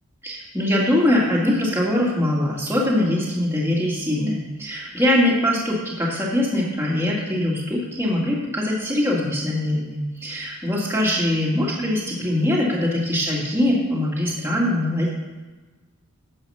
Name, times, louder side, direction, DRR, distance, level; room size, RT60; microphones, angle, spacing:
voice 1, 0.2-15.1, left 1 dB, 10° right, -5 dB, 2.2 m, -22 dB
10.0 x 7.3 x 5.7 m, 1.2 s
head